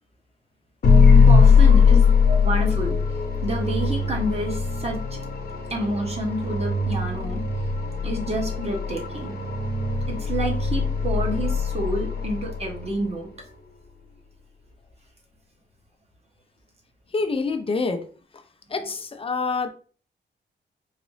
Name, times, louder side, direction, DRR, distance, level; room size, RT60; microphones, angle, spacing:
sound 1, 0.8-13.0, left 5 dB, 60° left, 0.8 m, -20 dB
voice 1, 1.2-2.0 2.4-3.0 3.4-5.2 5.7-7.4 8.0-9.3 10.1-13.3, right 1 dB, 35° right, 1 dB, 0.9 m, -29 dB
voice 2, 17.1-18.0 18.7-19.7, left 4 dB, 30° left, 7 dB, 0.5 m, -26 dB
3.9 x 2.5 x 3.1 m, 0.41 s
wide cardioid pair, 125°, 18 cm